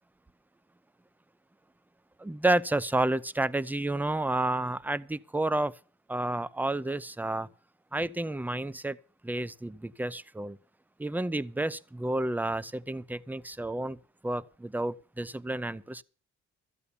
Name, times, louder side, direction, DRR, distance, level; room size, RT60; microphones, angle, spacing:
voice 1, 2.2-5.7 6.1-7.5 7.9-9.0 9.2-10.6 11.0-14.0 14.2-16.0, right 2 dB, 5° right, 0.6 m, -30 dB
14.0 x 8.2 x 7.1 m
cardioid pair, 90°, 30 cm